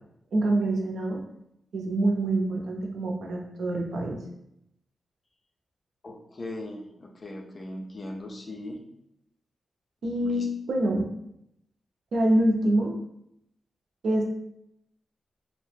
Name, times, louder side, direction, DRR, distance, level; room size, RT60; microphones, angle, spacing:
voice 1, 0.3-1.2 1.7-4.2 10.0-11.1 12.1-13.0 14.0-14.2, right 1 dB, 85° right, 1 dB, 0.5 m, -25 dB
voice 2, 6.0-8.8 10.2-10.5, left 1 dB, 35° left, 2 dB, 0.4 m, -39 dB
2.7 x 2.0 x 3.3 m, 0.78 s
wide cardioid pair, 155°, 0 cm